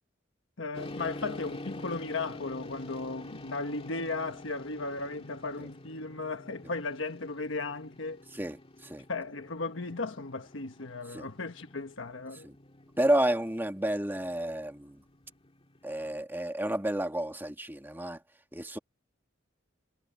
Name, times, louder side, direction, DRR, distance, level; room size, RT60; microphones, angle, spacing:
voice 1, 0.6-8.2 9.1-12.5, left 3 dB, 75° left, 1.3 m, -36 dB
sound 1, 0.7-16.2, left 1 dB, 30° left, 2.1 m, -47 dB
voice 2, 13.0-15.0 15.8-18.2 18.5-18.8, right 1 dB, 10° right, 1.6 m, -30 dB
head